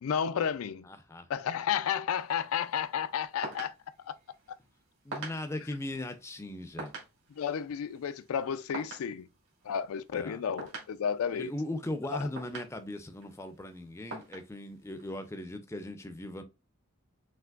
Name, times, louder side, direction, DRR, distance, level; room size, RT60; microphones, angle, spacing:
voice 1, 0.0-0.9 1.3-3.7 4.1-4.2 7.4-9.3 9.6-11.5, left 8 dB, 80° left, 0.4 m, -32 dB
voice 2, 0.9-1.3 5.0-6.9 10.1-10.4 11.3-16.4, left 1 dB, 15° left, 0.4 m, -38 dB
sound 1, 2.1-15.3, right 3 dB, 65° right, 2.0 m, -48 dB
5.7 x 2.9 x 2.4 m
head